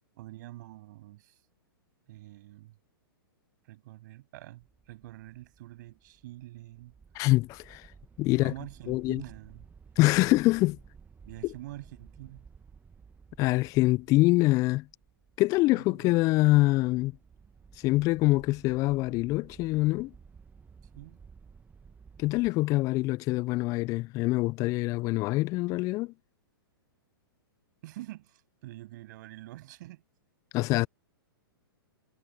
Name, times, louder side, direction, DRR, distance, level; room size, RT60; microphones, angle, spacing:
voice 1, 0.1-1.4 2.1-2.8 3.6-6.9 8.3-9.7 11.2-12.4 15.7-16.1 20.9-21.2 27.8-30.0, right 17 dB, 50° right, 7.7 m, -46 dB
sound 1, 4.6-22.5, right 5 dB, 10° right, 1.2 m, -55 dB
voice 2, 7.1-7.9 8.2-8.5 8.9-9.2 10.0-10.8 11.4-11.5 13.4-14.9 15.4-17.1 17.8-20.1 22.2-26.1 30.5-30.9, left 20 dB, 25° left, 0.3 m, -25 dB
hypercardioid pair, 115°, 12 cm